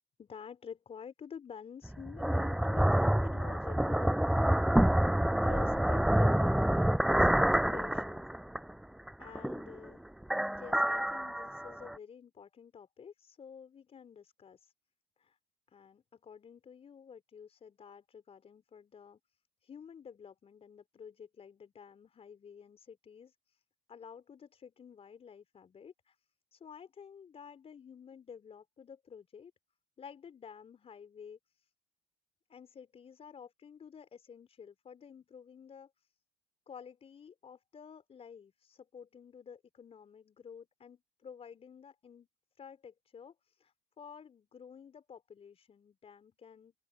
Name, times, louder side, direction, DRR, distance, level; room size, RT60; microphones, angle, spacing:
voice 1, 0.2-4.4 4.8-8.3 9.2-10.0 10.4-14.7 15.2-15.4 15.7-19.2 19.6-23.6 23.9-26.2 26.5-29.5 30.0-31.7 32.5-36.1 36.7-42.3 42.6-46.7, left 7 dB, 40° left, 4.4 m, -51 dB
sound 1, 1.8-8.7 9.1-9.9 10.2-12.0, right 1 dB, ahead, 0.3 m, -28 dB
open air
hypercardioid pair, 60°, 16 cm